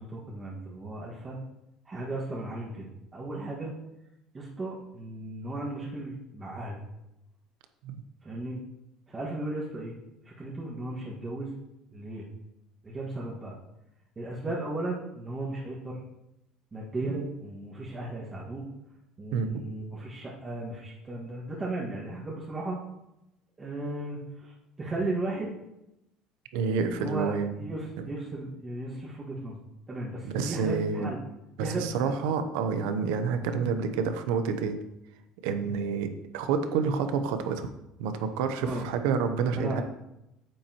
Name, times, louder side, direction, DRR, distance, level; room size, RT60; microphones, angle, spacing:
voice 1, 0.0-1.4 1.9-3.7 4.3-6.8 8.2-8.6 9.1-9.9 10.3-11.5 11.9-12.3 12.8-13.6 14.2-16.0 16.7-18.7 19.2-22.8 23.6-25.6 26.6-29.6 29.9-31.2 31.6-32.2 38.6-38.9 39.6-39.8, right 2 dB, 25° right, -5 dB, 1.8 m, -36 dB
voice 2, 26.5-27.5 30.3-31.1 31.6-34.8 35.4-37.7 38.0-39.8, right 5 dB, 80° right, 8 dB, 0.8 m, -28 dB
9.3 x 7.4 x 3.0 m, 0.88 s
supercardioid pair, 95°, 0 cm